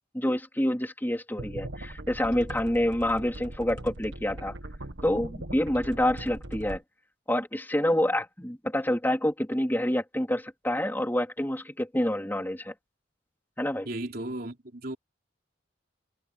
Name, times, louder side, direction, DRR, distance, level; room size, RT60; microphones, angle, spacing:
voice 1, 0.1-4.5 5.0-6.8 7.3-12.7 13.6-13.9, left 1 dB, 10° left, 3.2 m, -27 dB
sound 1, 1.4-6.8, right 1 dB, 70° right, 1.6 m, -40 dB
voice 2, 13.8-15.0, right 1 dB, 50° right, 3.7 m, -35 dB
head